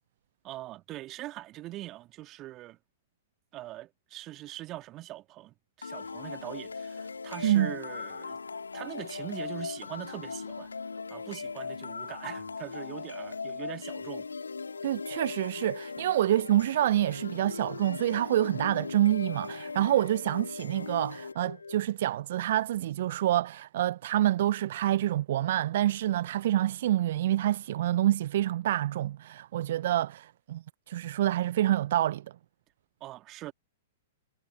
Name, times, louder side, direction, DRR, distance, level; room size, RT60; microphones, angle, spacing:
voice 1, 0.4-2.8 3.5-8.4 8.7-10.7 11.1-14.3 16.0-16.1 33.0-33.5, right 16 dB, 30° right, 2.8 m, -42 dB
sound 1, 5.8-21.8, left 4 dB, 80° left, 1.9 m, -39 dB
voice 2, 14.8-30.6 30.9-32.2, right 13 dB, 55° right, 0.5 m, -27 dB
figure-of-eight pair, 105°, 0 cm